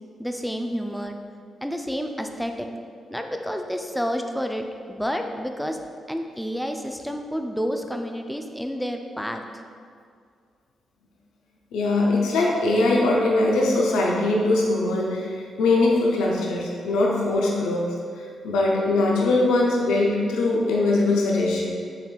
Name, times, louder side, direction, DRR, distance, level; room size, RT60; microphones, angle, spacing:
voice 1, 0.2-1.2 1.6-2.7 3.1-5.8 6.1-9.4, equal, 5° left, 5 dB, 0.4 m, -29 dB
voice 2, 11.7-17.9 18.2-21.7, left 2 dB, 80° left, -2 dB, 0.6 m, -21 dB
5.5 x 3.6 x 2.4 m, 2.2 s
hypercardioid pair, 45°, 0 cm